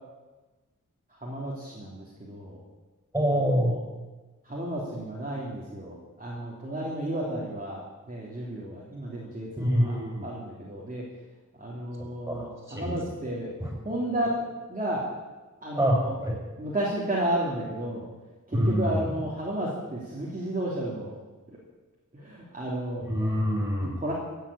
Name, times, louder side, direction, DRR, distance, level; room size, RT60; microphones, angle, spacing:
voice 1, 1.2-2.6 3.6-3.8 4.5-7.8 8.1-10.0 10.2-11.0 11.6-13.5 13.8-14.4 14.7-15.1 15.6-16.1 16.6-18.0 18.5-21.2 22.1-23.0 23.8-24.1, right 1 dB, 25° right, -5 dB, 3.2 m, -32 dB
voice 2, 3.1-3.7 9.6-10.3 12.3-13.1 13.6-13.8 15.8-16.4 18.5-19.1 23.0-24.0, equal, 10° right, -2 dB, 6.7 m, -26 dB
16.0 x 8.4 x 8.6 m, 1.2 s
wide cardioid pair, 70°, 32 cm